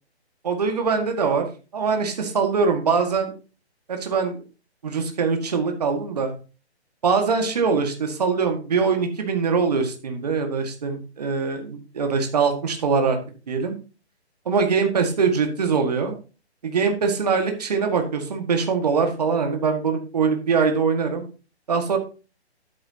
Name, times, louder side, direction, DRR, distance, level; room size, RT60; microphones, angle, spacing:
voice 1, 0.4-1.5 1.7-3.3 3.9-4.4 4.8-6.3 7.0-13.2 13.5-13.8 14.5-16.2 16.6-21.3 21.7-22.0, right 5 dB, 35° right, 5 dB, 1.8 m, -22 dB
12.0 x 8.6 x 2.9 m, 0.33 s
hypercardioid pair, 170°, 33 cm